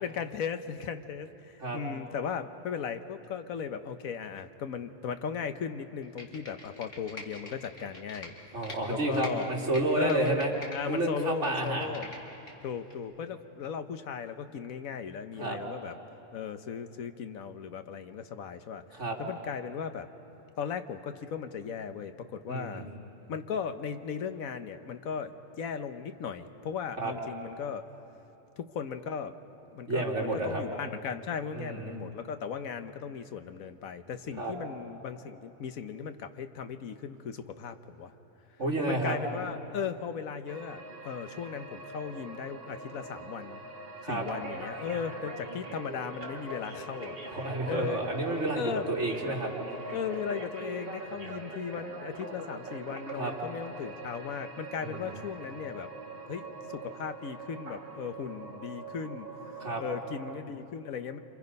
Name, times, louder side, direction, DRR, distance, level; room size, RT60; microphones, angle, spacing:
voice 1, 0.0-8.3 8.9-9.5 9.9-12.1 12.6-15.9 16.3-18.8 19.2-20.1 20.6-22.9 23.3-27.8 28.6-29.3 29.7-38.1 38.9-43.6 44.0-47.2 47.7-48.0 48.5-48.8 49.9-55.9 56.3-59.3 59.8-61.2, left 7 dB, 80° left, 9 dB, 1.3 m, -37 dB
Computer keyboard, 6.0-8.8 9.1-10.8 11.1-12.5 12.9-13.0, left 2 dB, 65° left, 2.7 m, -45 dB
voice 2, 8.5-10.5 10.9-11.9 15.4-15.6 18.9-19.2 22.5-22.8 27.0-27.1 29.9-30.6 31.5-32.0 34.4-34.5 38.6-39.2 44.0-44.2 47.3-49.5 53.2-53.3 54.8-55.1 59.6-59.8, right 2 dB, 60° right, -2 dB, 3.0 m, -30 dB
sound 1, 40.5-60.4, right 2 dB, 45° right, 2.0 m, -43 dB
27.5 x 26.5 x 5.4 m, 3.0 s
omnidirectional pair, 1.4 m